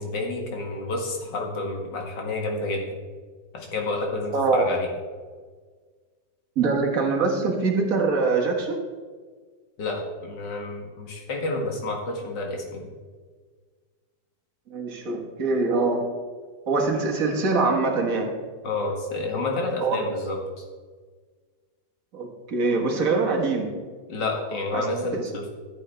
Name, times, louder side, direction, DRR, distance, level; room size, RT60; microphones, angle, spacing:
voice 1, 0.0-2.9 3.5-4.9 9.8-12.9 18.6-20.6 24.1-25.5, left 2 dB, 85° left, 1 dB, 2.3 m, -29 dB
voice 2, 4.3-4.6 6.6-8.8 14.7-16.1 16.7-18.4 19.8-20.0 22.1-23.8 24.7-24.9 25.1-25.2, right 3 dB, 55° right, 1 dB, 1.8 m, -23 dB
14.0 x 7.7 x 3.4 m, 1.5 s
omnidirectional pair, 1.9 m